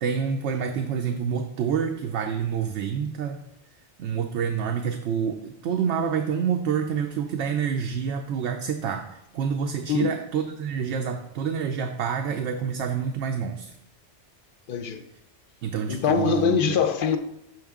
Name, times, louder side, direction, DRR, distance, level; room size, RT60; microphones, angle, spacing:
voice 1, 0.0-3.4 4.0-13.7 15.6-16.8, right 7 dB, 80° right, 0.9 m, -27 dB
voice 2, 14.7-15.0 15.9-17.2, left 7 dB, 55° left, 0.7 m, -23 dB
6.3 x 6.0 x 3.6 m
omnidirectional pair, 1.2 m